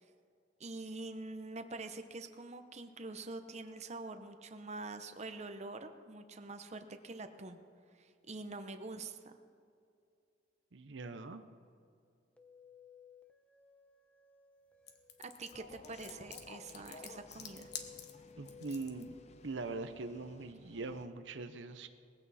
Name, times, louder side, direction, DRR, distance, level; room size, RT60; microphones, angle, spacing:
voice 1, 0.6-7.6 7.9-9.4 15.2-17.7, right 3 dB, 35° right, 8 dB, 0.8 m, -45 dB
voice 2, 10.7-11.4 18.4-19.1 19.4-21.9, right 3 dB, 75° right, 9 dB, 0.7 m, -42 dB
sound 1, 12.4-19.5, left 6 dB, 5° left, 0.8 m, -59 dB
sound 2, 14.9-19.0, left 8 dB, 60° left, 1.4 m, -48 dB
sound 3, 15.5-21.1, left 2 dB, 35° left, 0.7 m, -57 dB
19.5 x 15.5 x 4.2 m, 2.4 s
head